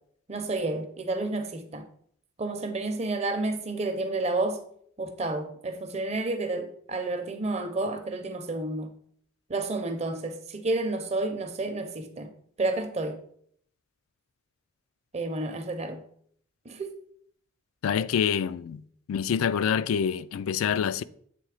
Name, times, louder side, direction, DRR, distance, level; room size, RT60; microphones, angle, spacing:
voice 1, 0.3-1.9 2.4-4.6 5.0-8.9 9.5-12.3 12.6-13.2 15.1-16.0 16.6-16.9, right 2 dB, 30° right, 0.6 m, -30 dB
voice 2, 17.8-18.8 19.1-21.0, left 7 dB, 85° left, 0.3 m, -26 dB
7.7 x 3.1 x 4.9 m
head